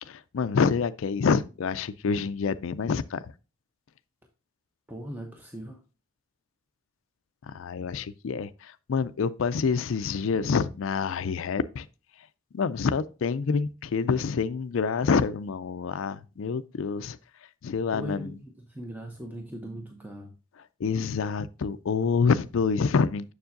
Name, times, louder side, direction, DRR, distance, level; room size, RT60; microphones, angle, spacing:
voice 1, 0.0-3.3 7.5-11.9 12.5-17.2 17.6-18.3 20.8-23.3, left 5 dB, 65° left, 0.4 m, -27 dB
voice 2, 4.9-5.8 17.9-20.3, equal, 10° right, 0.7 m, -39 dB
7.0 x 6.6 x 2.5 m
head